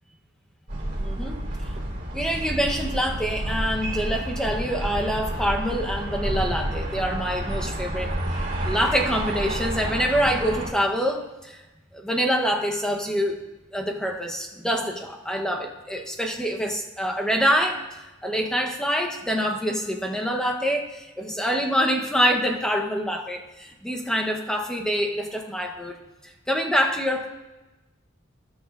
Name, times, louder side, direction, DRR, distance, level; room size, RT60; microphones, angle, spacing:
sound 1, 0.7-10.7, right 1 dB, 40° right, 3.1 m, -30 dB
voice 1, 1.0-1.4 2.1-8.1 8.6-11.6 11.9-13.4 13.7-17.8 18.2-25.9 26.2-27.3, equal, 5° left, 2 dB, 0.7 m, -25 dB
17.5 x 6.4 x 2.4 m, 1.1 s
head